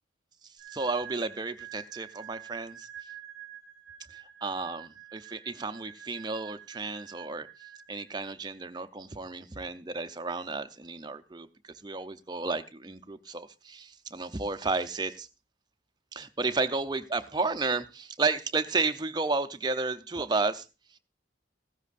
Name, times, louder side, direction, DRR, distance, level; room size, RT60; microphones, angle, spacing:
sound 1, 0.6-8.2, right 10 dB, ahead, 6.3 m, -48 dB
voice 1, 0.7-2.9 4.1-7.5 7.9-11.5 11.8-15.3 16.1-20.6, right 3 dB, 20° right, 0.6 m, -32 dB
15.5 x 13.5 x 2.5 m
head